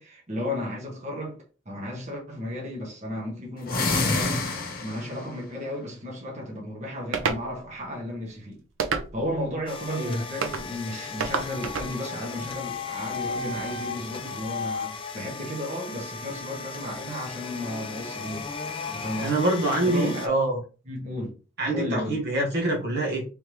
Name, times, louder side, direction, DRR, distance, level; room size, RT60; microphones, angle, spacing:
voice 1, 0.0-1.4 1.6-4.4 4.8-8.6 9.1-18.5 18.9-19.3 19.8-20.3 20.9-21.3 21.7-22.2, left 1 dB, 35° right, 1.2 m, -34 dB
sound 1, 3.6-5.2, left 3 dB, 45° left, 0.9 m, -26 dB
sound 2, 7.1-7.4 8.8-9.4 10.4-10.7 11.2-11.9, right 5 dB, 80° right, 0.6 m, -28 dB
sound 3, 9.7-20.3, left 5 dB, 25° left, 0.4 m, -36 dB
voice 2, 19.2-20.6 21.6-23.2, right 2 dB, 55° right, 1.2 m, -25 dB
3.5 x 3.3 x 3.0 m
head